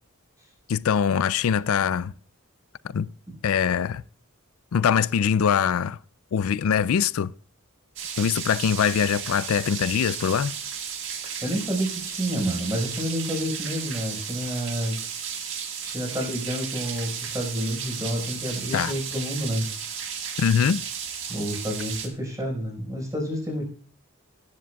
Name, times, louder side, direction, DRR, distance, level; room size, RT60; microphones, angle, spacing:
voice 1, 0.7-2.1 2.9-3.1 3.4-4.0 4.7-6.0 6.3-7.3 8.2-10.6 18.7-18.9 20.4-20.8, left 7 dB, 85° left, 0.4 m, -23 dB
sound 1, 8.0-22.1, right 7 dB, 60° right, 1.8 m, -34 dB
voice 2, 11.4-15.0 15.8-19.7 21.3-23.6, equal, 15° right, 4.8 m, -29 dB
18.0 x 10.0 x 2.3 m
head